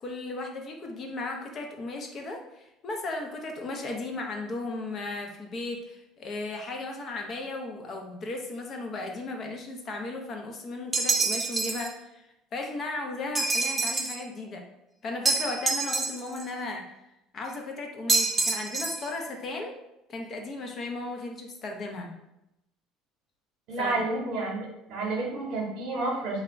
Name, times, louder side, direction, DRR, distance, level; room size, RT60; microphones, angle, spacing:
voice 1, 0.0-12.2 12.5-14.6 15.0-17.0 17.3-19.7 20.1-22.2 23.7-24.0, left 2 dB, 45° left, 3 dB, 0.5 m, -36 dB
sound 1, 10.9-11.9 13.4-14.2 15.3-16.4 18.1-19.1, right 3 dB, 20° right, 0.4 m, -27 dB
voice 2, 23.7-26.4, right 2 dB, 70° right, -1 dB, 0.8 m, -30 dB
2.2 x 2.0 x 3.6 m, 0.88 s
hypercardioid pair, 80°, 0 cm